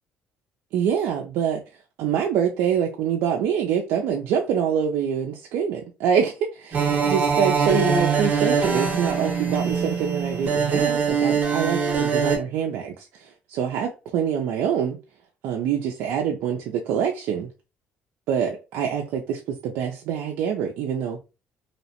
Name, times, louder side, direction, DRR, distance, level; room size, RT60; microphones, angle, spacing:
voice 1, 0.7-1.6 2.0-15.0 15.4-17.5 18.3-21.2, right 8 dB, 80° right, 1 dB, 0.4 m, -25 dB
sound 1, 6.7-12.4, right 5 dB, 45° right, 0.9 m, -23 dB
2.7 x 2.0 x 2.8 m, 0.29 s
cardioid pair, 105°, 4 cm